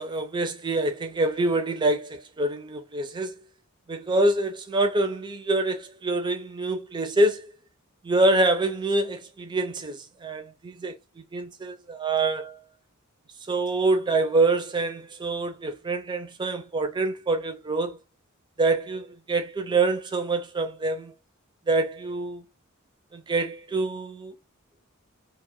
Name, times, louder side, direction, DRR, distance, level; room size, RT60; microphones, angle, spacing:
voice 1, 0.0-3.3 3.9-7.4 8.0-10.9 11.3-12.6 13.5-18.0 18.6-21.1 21.7-22.4 23.1-24.3, right 2 dB, 20° right, 0.4 m, -26 dB
2.2 x 2.1 x 2.8 m
head